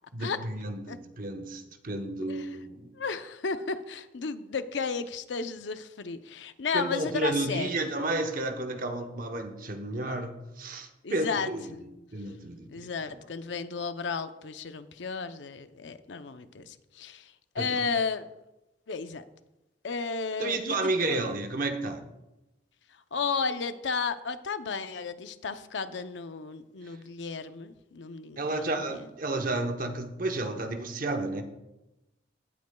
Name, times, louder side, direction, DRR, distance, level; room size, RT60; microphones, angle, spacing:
voice 1, 0.1-2.9 6.7-11.7 12.1-12.9 17.6-17.8 20.4-22.0 26.8-26.9 28.4-31.4, right 2 dB, 50° right, 0.9 m, -32 dB
voice 2, 2.9-8.0 11.0-11.8 12.7-18.3 18.9-19.2 19.8-21.2 23.1-29.1, left 5 dB, 85° left, 0.6 m, -34 dB
17.0 x 8.4 x 2.3 m
head